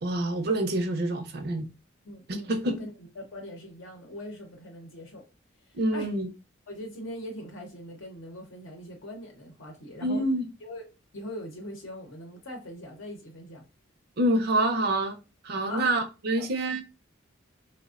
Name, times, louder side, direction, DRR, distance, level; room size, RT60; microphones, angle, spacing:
voice 1, 0.0-1.7 2.3-2.8 5.7-6.3 10.0-10.4 14.2-15.2 15.4-16.8, right 1 dB, 55° right, 0.5 m, -26 dB
voice 2, 2.0-5.2 5.6-6.1 6.7-10.2 10.6-10.9 11.1-13.6 15.7-15.9 16.4-16.5, left 1 dB, 75° left, 0.7 m, -41 dB
3.3 x 2.1 x 2.3 m
head